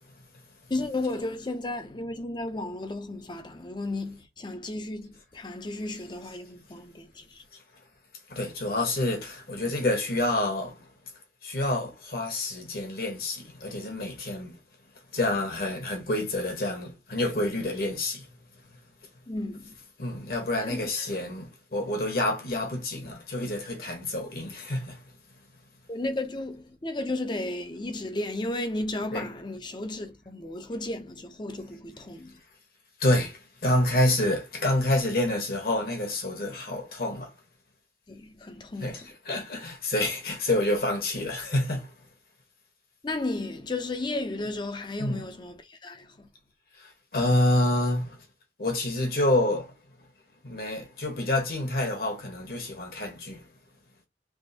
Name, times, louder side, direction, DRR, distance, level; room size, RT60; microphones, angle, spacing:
voice 1, 0.7-7.4 19.3-19.8 20.6-20.8 25.9-32.4 38.1-39.1 43.0-46.3, left 2 dB, 25° left, 0.5 m, -34 dB
voice 2, 8.3-10.9 11.4-14.6 15.1-18.2 20.0-25.0 29.1-29.2 33.0-37.3 38.8-41.9 45.0-45.2 46.8-48.2 48.6-49.7 50.4-53.4, left 1 dB, 55° left, 1.2 m, -28 dB
3.5 x 3.0 x 2.8 m
head